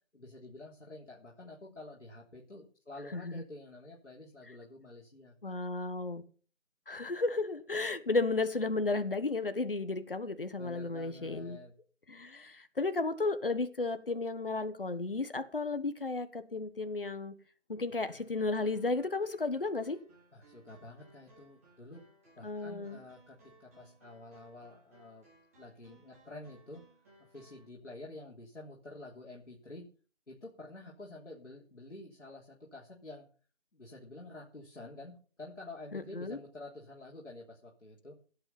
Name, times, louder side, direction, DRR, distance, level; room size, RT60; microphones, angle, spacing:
voice 1, 0.1-5.6 10.6-11.7 20.3-22.0 22.4-25.3 25.6-26.8 27.3-29.8 30.3-33.3 33.7-38.2, left 2 dB, 70° left, -3 dB, 3.6 m, -49 dB
voice 2, 3.1-3.4 5.4-6.2 6.9-11.6 12.1-17.3 17.7-20.0 22.4-23.0 35.9-36.4, left 3 dB, 45° left, 11 dB, 1.4 m, -33 dB
sound 1, 18.1-27.6, right 2 dB, 10° right, 3.7 m, -63 dB
17.0 x 7.7 x 5.8 m, 0.41 s
figure-of-eight pair, 170°, 38 cm